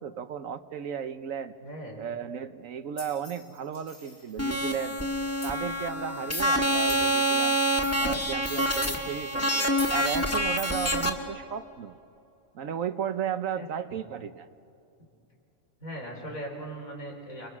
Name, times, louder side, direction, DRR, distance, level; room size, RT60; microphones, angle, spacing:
voice 1, 0.0-1.5 2.0-5.0 5.4-7.6 8.0-12.0 12.5-14.5, right 8 dB, 80° right, 10 dB, 1.2 m, -34 dB
voice 2, 1.6-2.0 13.5-13.7 15.8-17.5, right 1 dB, 90° left, 1 dB, 5.3 m, -39 dB
sound 1, 3.0-4.7 5.4-5.6 6.3-6.4 6.9-7.1 7.8-9.1 9.8-9.9, left 1 dB, 70° left, 6.4 m, -44 dB
sound 2, 4.4-11.1, equal, 10° left, 1.8 m, -27 dB
29.5 x 23.5 x 6.1 m, 2.7 s
omnidirectional pair, 1.4 m